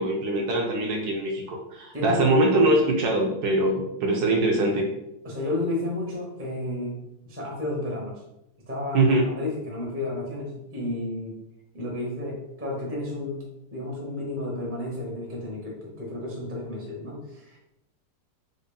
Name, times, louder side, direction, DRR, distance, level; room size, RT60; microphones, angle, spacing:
voice 1, 0.0-4.9 8.9-9.3, right 2 dB, 70° right, 1 dB, 1.0 m, -23 dB
voice 2, 5.2-7.0 7.2-8.2 8.7-11.4 11.7-13.4 13.7-17.6, left 1 dB, 15° right, -3 dB, 0.4 m, -32 dB
5.1 x 2.5 x 2.3 m, 0.84 s
omnidirectional pair, 2.0 m